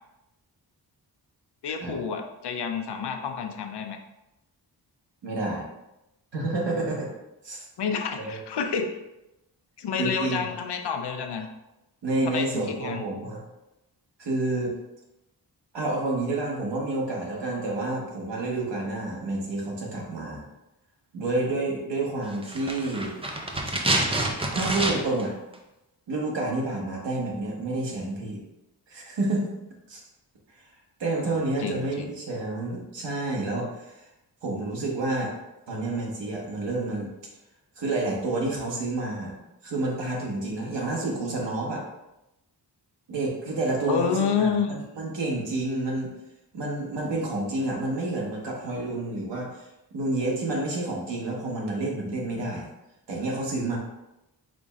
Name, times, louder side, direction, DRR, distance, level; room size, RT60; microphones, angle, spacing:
voice 1, 1.6-4.0 7.8-8.9 9.8-11.5 12.3-13.0 31.2-32.1 43.9-44.7, left 6 dB, 70° left, 5 dB, 0.6 m, -29 dB
voice 2, 5.2-5.6 6.3-7.1 7.4-7.7 8.1-8.4 10.0-10.4 12.0-13.4 14.2-14.7 15.7-20.4 21.1-23.1 24.5-25.3 26.1-28.4 28.9-29.6 29.9-30.0 30.5-30.7 31.0-34.1 34.4-35.3 35.7-37.1 37.8-39.3 39.6-41.8 43.1-46.2 46.5-49.7 49.9-52.7 53.1-53.8, right 2 dB, 85° right, -2 dB, 1.2 m, -29 dB
sound 1, 22.4-25.3 25.5-25.6, right 1 dB, 15° right, 0.4 m, -27 dB
5.1 x 4.2 x 2.4 m, 0.92 s
wide cardioid pair, 175°, 42 cm